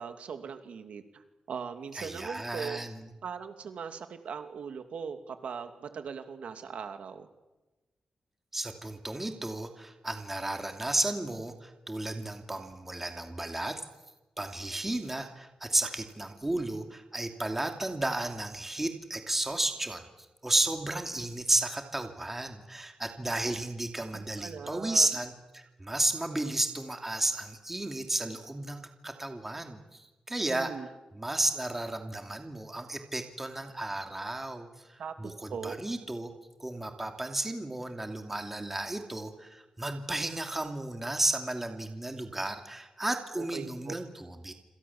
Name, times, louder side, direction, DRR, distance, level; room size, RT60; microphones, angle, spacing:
voice 1, 0.0-2.8 3.2-7.3 24.1-25.1 30.5-30.9 35.0-35.1 35.5-35.8 43.4-44.0, right 6 dB, 70° right, 8 dB, 2.6 m, -40 dB
voice 2, 1.9-3.1 8.5-13.8 14.4-30.7 31.1-36.3 36.6-44.5, right 2 dB, 10° right, 5 dB, 2.7 m, -33 dB
28.0 x 27.0 x 7.3 m, 1.1 s
wide cardioid pair, 155°, 2 cm